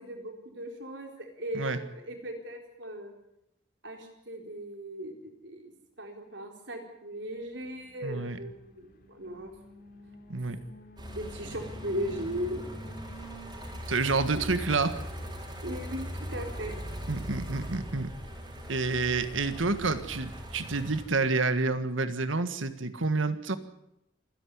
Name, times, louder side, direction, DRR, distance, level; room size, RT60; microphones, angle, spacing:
voice 1, 0.0-3.1 3.8-5.7 6.0-9.5 11.1-12.7 15.6-16.8, equal, 65° right, 3 dB, 4.3 m, -38 dB
Alarm, 7.6-21.0, equal, 50° left, 2.7 m, -53 dB
voice 2, 8.0-8.4 10.3-10.6 13.9-15.0 17.1-18.1 18.7-23.6, right 3 dB, 90° right, 11 dB, 1.6 m, -29 dB
sound 1, 11.0-21.0, equal, 20° right, 4.4 m, -40 dB
26.0 x 11.0 x 9.5 m, 0.83 s
head